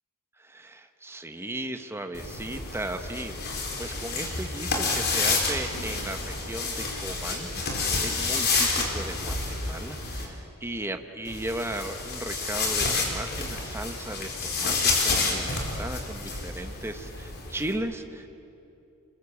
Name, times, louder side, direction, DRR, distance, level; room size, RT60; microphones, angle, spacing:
voice 1, 0.4-18.4, right 1 dB, 10° right, 7 dB, 1.1 m, -36 dB
sound 1, 2.1-10.3 11.3-17.7, left 3 dB, 50° left, 4.3 m, -29 dB
28.0 x 22.0 x 8.6 m, 2.8 s
head